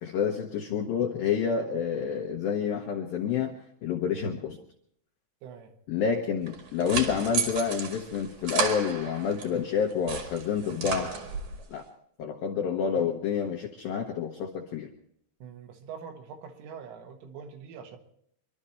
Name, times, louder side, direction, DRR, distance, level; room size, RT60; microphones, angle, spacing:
voice 1, 0.0-3.5 3.8-4.6 5.9-11.1 11.7-11.9 12.2-14.9, left 7 dB, 80° left, 2 dB, 2.1 m, -28 dB
voice 2, 5.4-5.7 15.4-18.0, right 6 dB, 75° right, 4 dB, 4.0 m, -44 dB
sound 1, 6.5-9.5 9.9-11.6, right 6 dB, 50° right, 2.4 m, -33 dB
26.5 x 12.5 x 4.4 m, 0.70 s
omnidirectional pair, 6.0 m